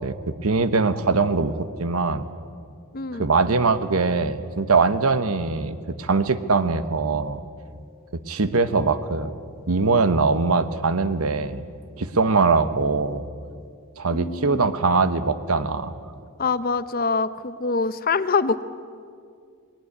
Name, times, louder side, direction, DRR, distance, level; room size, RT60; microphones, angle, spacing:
voice 1, 0.0-2.3 3.2-7.4 8.3-9.3 9.7-11.6 12.0-13.2 14.0-15.9, right 4 dB, 85° right, 12 dB, 1.1 m, -22 dB
voice 2, 2.9-3.3 14.1-14.8 16.4-18.7, left 4 dB, 45° left, 14 dB, 0.7 m, -25 dB
20.0 x 18.0 x 9.7 m, 2.3 s
head